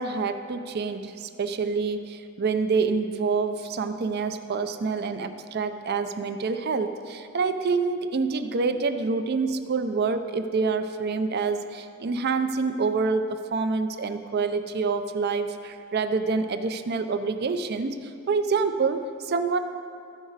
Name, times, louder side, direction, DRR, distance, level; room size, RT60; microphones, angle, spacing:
voice 1, 0.0-19.6, right 4 dB, 50° right, 9 dB, 0.5 m, -27 dB
14.0 x 5.0 x 4.0 m, 2.4 s
head